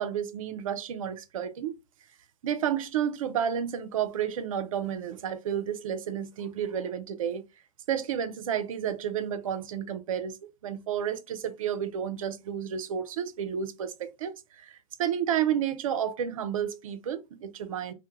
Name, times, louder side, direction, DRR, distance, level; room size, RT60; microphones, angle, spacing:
voice 1, 0.0-1.8 2.4-7.4 7.9-17.9, right 9 dB, 65° right, 0.5 m, -31 dB
2.1 x 2.1 x 3.0 m
figure-of-eight pair, 95°, 19 cm